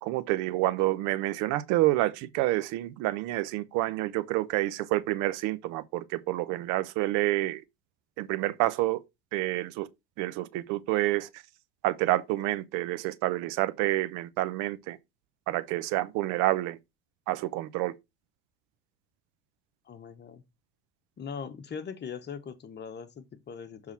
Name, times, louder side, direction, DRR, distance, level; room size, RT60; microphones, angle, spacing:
voice 1, 0.0-7.6 8.2-9.0 9.3-9.9 10.2-11.4 11.8-15.0 15.5-16.8 17.3-17.9, right 17 dB, 70° right, 0.8 m, -28 dB
voice 2, 19.9-20.4 21.2-23.9, left 6 dB, 35° left, 1.2 m, -40 dB
7.3 x 3.8 x 4.3 m
supercardioid pair, 95°, 32 cm